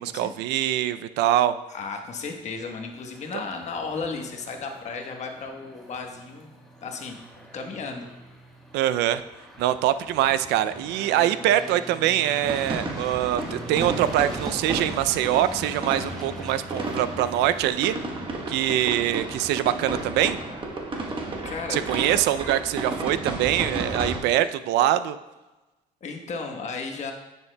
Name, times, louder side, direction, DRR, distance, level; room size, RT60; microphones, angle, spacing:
voice 1, 0.0-1.5 8.7-9.2 9.6-18.0 18.5-20.4 21.7-25.2, right 12 dB, 85° right, 13 dB, 0.4 m, -24 dB
voice 2, 1.7-6.5 6.8-7.2 7.5-8.1 21.4-21.8 26.0-27.1, left 4 dB, 45° left, 3 dB, 1.1 m, -34 dB
sound 1, 2.3-17.6, equal, ahead, 1.3 m, -43 dB
sound 2, 12.4-24.2, right 2 dB, 30° right, 1.1 m, -32 dB
9.5 x 7.2 x 2.2 m, 1.1 s
cardioid pair, 110°, 17 cm